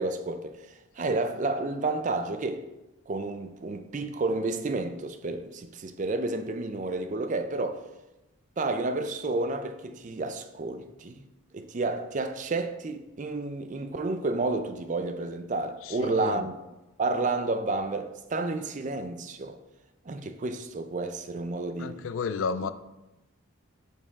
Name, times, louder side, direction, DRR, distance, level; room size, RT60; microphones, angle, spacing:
voice 1, 0.0-2.7 3.1-7.8 8.6-11.2 11.5-19.6 20.0-22.1 22.6-22.7, right 3 dB, 35° right, 0.4 m, -31 dB
voice 2, 15.9-16.5 21.8-22.7, left 5 dB, 70° left, 0.4 m, -32 dB
6.5 x 5.4 x 3.6 m
head